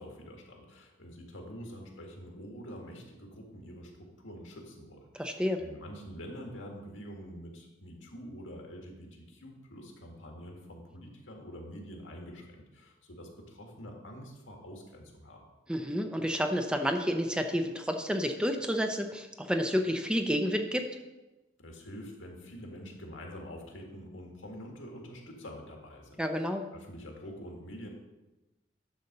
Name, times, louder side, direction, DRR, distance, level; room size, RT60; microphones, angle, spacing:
voice 1, 0.0-15.4 21.6-27.9, equal, 90° left, 1 dB, 1.9 m, -46 dB
voice 2, 5.2-5.6 15.7-20.9 26.2-26.6, equal, 5° right, 5 dB, 0.5 m, -30 dB
10.5 x 4.2 x 6.6 m, 1.1 s
head